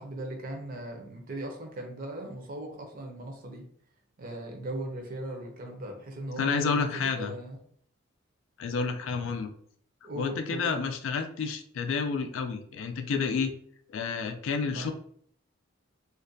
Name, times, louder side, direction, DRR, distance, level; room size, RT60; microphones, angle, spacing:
voice 1, 0.0-3.7 4.2-7.6 10.0-10.8 14.7-14.9, right 1 dB, 50° right, 2 dB, 0.6 m, -38 dB
voice 2, 6.4-7.3 8.6-9.5 10.2-13.5 13.9-14.9, left 5 dB, 80° left, 7 dB, 0.3 m, -30 dB
2.5 x 2.1 x 2.6 m, 0.62 s
head